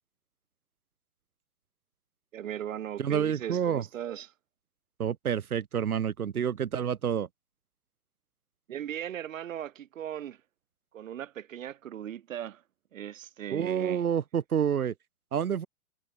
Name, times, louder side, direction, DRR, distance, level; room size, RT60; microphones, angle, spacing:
voice 1, 2.3-4.3 8.7-10.4 10.9-12.6 12.9-14.0, right 10 dB, 65° right, 5.2 m, -38 dB
voice 2, 3.0-3.8 5.0-7.3 13.5-14.9 15.3-15.7, right 8 dB, 85° right, 7.3 m, -28 dB
hypercardioid pair, 165°, 43 cm